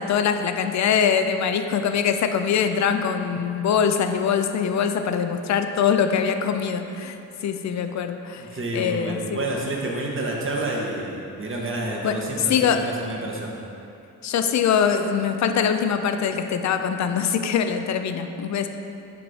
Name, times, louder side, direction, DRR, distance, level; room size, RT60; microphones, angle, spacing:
voice 1, 0.0-7.2 7.4-8.5 8.7-9.5 12.0-12.2 12.5-12.8 14.2-18.7, left 7 dB, 55° left, 7 dB, 0.5 m, -23 dB
voice 2, 8.4-13.5, right 2 dB, 35° right, -2 dB, 1.2 m, -29 dB
5.8 x 3.1 x 5.3 m, 2.7 s
cardioid pair, 70°, 34 cm